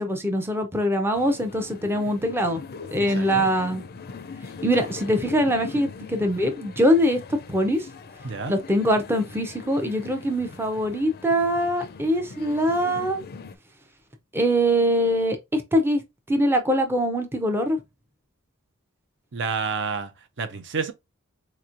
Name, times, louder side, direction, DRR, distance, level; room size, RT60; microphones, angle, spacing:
voice 1, 0.0-2.6 2.9-3.8 4.6-7.9 8.5-13.2 14.3-16.0 16.3-17.8, equal, 10° right, 0.6 m, -23 dB
sound 1, 1.1-13.6, left 5 dB, 45° left, 0.5 m, -41 dB
voice 2, 3.0-3.5 8.2-8.5 19.3-20.1 20.4-20.9, right 5 dB, 55° right, 0.6 m, -29 dB
4.3 x 3.0 x 2.5 m
head